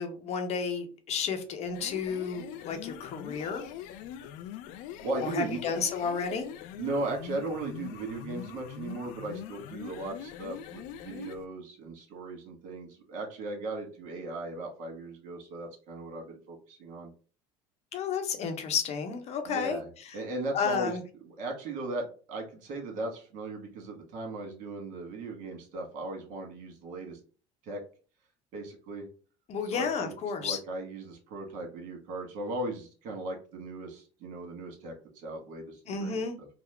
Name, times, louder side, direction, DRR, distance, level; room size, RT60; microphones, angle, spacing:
voice 1, 0.0-3.6 5.2-6.5 17.9-19.8 20.1-20.2 20.5-21.0 29.5-30.6 35.9-36.4, left 6 dB, 50° left, 6 dB, 0.8 m, -32 dB
sound 1, 1.6-11.4, left 10 dB, 70° left, 0.4 m, -43 dB
voice 2, 5.0-5.7 6.8-17.1 19.4-19.9 20.1-20.9 21.4-27.2 27.6-27.8 28.5-29.1 29.7-30.1 30.4-36.5, right 2 dB, 65° right, 1 dB, 1.4 m, -37 dB
3.6 x 2.0 x 3.3 m, 0.38 s
supercardioid pair, 100°, 14 cm